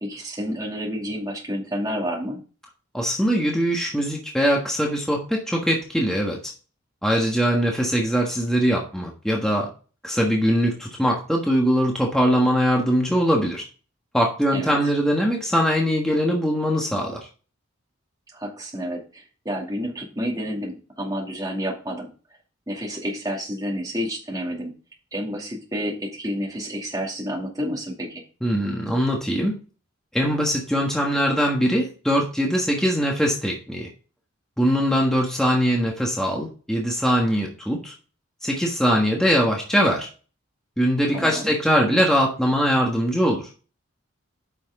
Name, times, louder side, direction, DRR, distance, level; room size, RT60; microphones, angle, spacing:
voice 1, 0.0-2.4 14.5-14.8 18.3-22.1 22.7-24.7 25.1-28.2 41.1-41.5, equal, 15° right, -2 dB, 2.4 m, -30 dB
voice 2, 2.9-6.5 7.0-9.7 10.0-13.6 14.1-17.3 28.4-29.6 30.1-33.9 34.6-37.9 38.4-40.1 40.8-43.5, equal, 5° left, -1 dB, 1.4 m, -22 dB
8.9 x 6.1 x 3.6 m, 0.36 s
head